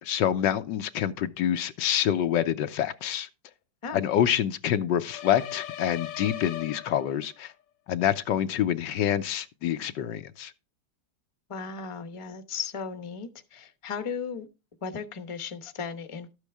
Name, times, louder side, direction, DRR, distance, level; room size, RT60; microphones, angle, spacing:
voice 1, 0.0-3.3 3.9-7.5 7.9-10.5, left 10 dB, 85° left, 1.4 m, -27 dB
sound 1, 5.1-7.4, left 11 dB, 65° left, 0.9 m, -39 dB
voice 2, 11.5-14.5 14.8-16.3, left 6 dB, 25° left, 0.8 m, -36 dB
12.5 x 8.2 x 3.4 m
omnidirectional pair, 1.9 m